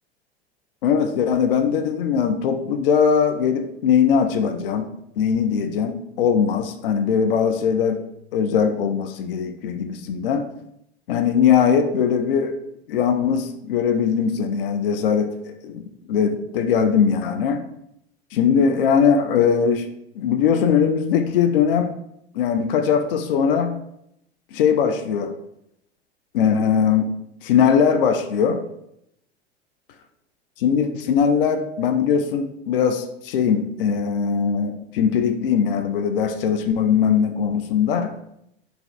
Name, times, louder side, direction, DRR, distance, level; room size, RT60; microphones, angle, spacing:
voice 1, 0.8-4.9 5.2-8.0 8.3-10.5 11.1-12.5 12.9-15.3 15.6-17.6 18.3-19.9 20.2-21.9 22.3-23.7 24.5-25.3 26.3-27.1 27.4-28.6 30.6-38.1, left 7 dB, 60° left, 7 dB, 0.5 m, -20 dB
4.5 x 2.7 x 3.2 m, 0.77 s
figure-of-eight pair, 80°, 32 cm